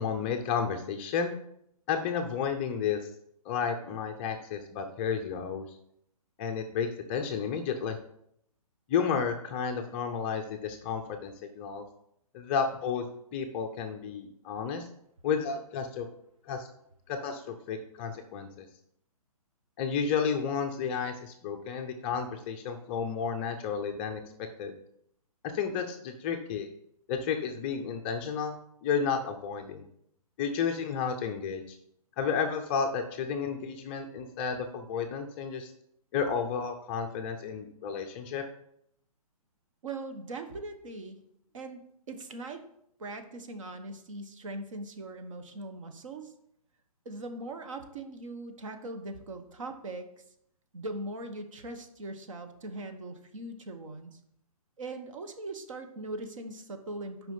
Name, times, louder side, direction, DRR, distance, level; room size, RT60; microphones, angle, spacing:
voice 1, 0.0-1.3 1.9-3.0 3.5-5.6 6.4-8.0 8.9-11.8 12.3-13.0 13.3-14.9 15.2-16.1 16.5-16.7 17.1-18.7 19.8-24.2 24.6-24.7 25.4-26.7 27.1-28.6 28.8-29.8 30.4-31.8 32.2-35.7 36.1-38.4, left 6 dB, 20° left, 4 dB, 0.4 m, -32 dB
voice 2, 39.8-41.2 41.5-42.6 43.0-46.3 47.0-50.1 50.7-54.2 54.8-57.3, right 2 dB, 55° right, 7 dB, 1.2 m, -40 dB
6.1 x 5.1 x 5.5 m, 0.73 s
hypercardioid pair, 155°, 19 cm